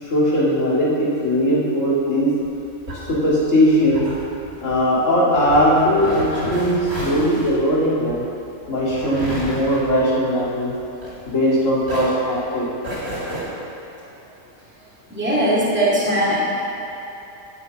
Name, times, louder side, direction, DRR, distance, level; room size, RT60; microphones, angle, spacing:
voice 1, 0.0-2.3 3.1-4.1 4.6-8.2 8.7-10.7 11.3-12.7, equal, 80° left, -7 dB, 2.5 m, -19 dB
sound 1, 2.4-11.5 11.8-13.4, equal, 85° right, 3.3 m, -32 dB
voice 2, 15.1-16.4, right 1 dB, 10° right, -8 dB, 2.2 m, -19 dB
9.6 x 6.2 x 8.3 m, 3.0 s
omnidirectional pair, 1.3 m